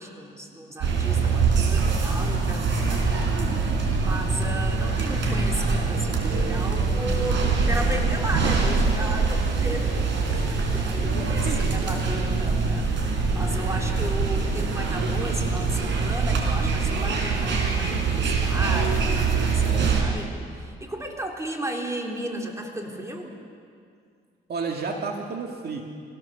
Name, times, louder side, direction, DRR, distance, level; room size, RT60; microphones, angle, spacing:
voice 1, 0.0-3.4 4.0-12.9 13.3-23.4, right 1 dB, 15° right, 1 dB, 3.4 m, -34 dB
sound 1, 0.8-20.0, right 4 dB, 70° right, 4.1 m, -24 dB
voice 2, 11.2-11.8 24.5-25.8, right 4 dB, 55° right, 2 dB, 2.1 m, -31 dB
24.5 x 17.5 x 7.0 m, 2.2 s
cardioid pair, 90°, 20 cm